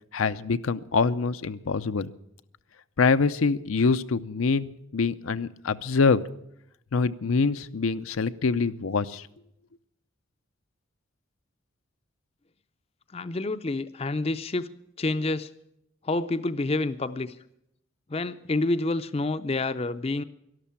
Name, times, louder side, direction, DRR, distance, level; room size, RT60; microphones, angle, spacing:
voice 1, 0.1-2.1 3.0-6.2 6.9-9.3, left 4 dB, 85° left, 11 dB, 0.6 m, -25 dB
voice 2, 13.1-14.7 15.0-15.5 16.0-17.4 18.1-20.2, left 2 dB, 30° left, 12 dB, 0.5 m, -28 dB
12.5 x 12.0 x 8.7 m, 0.77 s
head